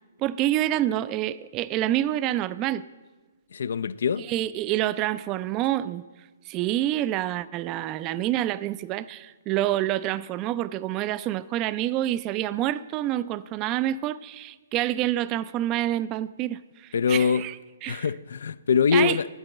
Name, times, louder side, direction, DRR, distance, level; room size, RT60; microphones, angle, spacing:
voice 1, 0.2-2.8 4.2-6.0 6.5-18.1 18.9-19.2, right 13 dB, 30° right, 0.3 m, -27 dB
voice 2, 3.5-4.3 16.9-17.4 17.9-19.3, left 6 dB, 70° left, 0.3 m, -23 dB
10.5 x 7.9 x 7.1 m
hypercardioid pair, 135°, 0 cm